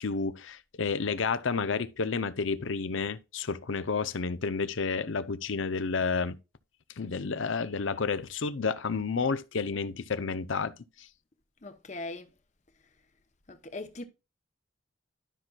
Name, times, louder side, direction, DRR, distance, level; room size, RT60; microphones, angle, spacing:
voice 1, 0.0-6.4 7.0-10.7 11.0-11.1, left 4 dB, 70° left, 0.6 m, -30 dB
voice 2, 11.6-12.3 13.5-14.0, left 2 dB, 35° left, 0.9 m, -40 dB
12.5 x 6.0 x 2.3 m
head